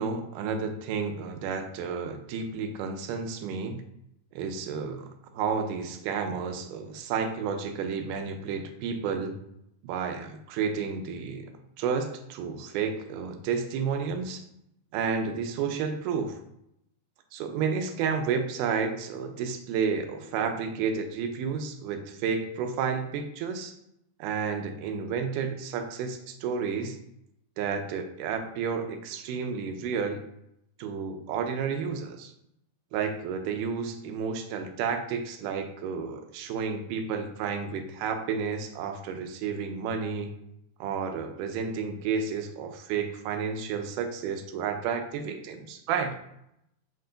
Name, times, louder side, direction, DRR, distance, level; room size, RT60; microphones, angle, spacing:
voice 1, 0.0-3.8 4.3-9.4 9.8-11.5 11.8-14.4 14.9-16.4 17.3-23.7 24.2-27.0 27.6-30.2 30.8-32.3 32.9-40.3 40.8-46.2, right 6 dB, 85° right, 6 dB, 2.1 m, -31 dB
6.1 x 2.2 x 3.8 m, 0.78 s
omnidirectional pair, 3.6 m